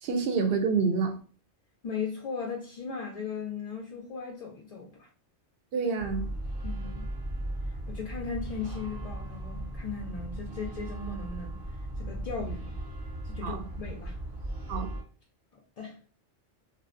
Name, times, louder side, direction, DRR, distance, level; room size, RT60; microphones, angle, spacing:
voice 1, 0.0-1.2 5.7-6.3 13.4-13.6 14.7-14.9, right 5 dB, 65° right, 0.7 m, -27 dB
voice 2, 1.8-5.1 6.6-7.1 7.9-11.6 12.0-12.7 13.2-14.2 15.8-16.0, left 5 dB, 65° left, 0.3 m, -37 dB
sound 1, 6.0-15.0, right 1 dB, 25° right, 0.8 m, -37 dB
2.6 x 2.1 x 2.4 m
omnidirectional pair, 1.2 m